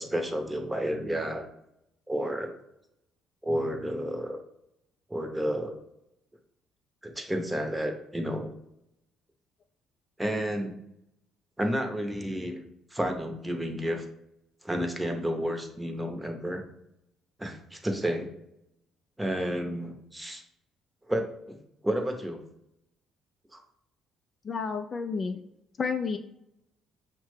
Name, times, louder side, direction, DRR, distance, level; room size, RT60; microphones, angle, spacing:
voice 1, 0.0-1.5 2.1-2.5 3.4-4.4 5.1-5.8 7.0-8.5 10.2-10.8 11.6-12.6 12.9-14.0 14.6-16.6 17.4-18.3 19.2-20.4 21.1-21.6 21.8-22.4 23.5-23.6, equal, 10° right, 4 dB, 0.8 m, -31 dB
voice 2, 24.4-25.4 25.8-26.2, left 5 dB, 45° left, 6 dB, 0.3 m, -30 dB
5.5 x 2.1 x 3.2 m, 0.80 s
supercardioid pair, 70°, 0 cm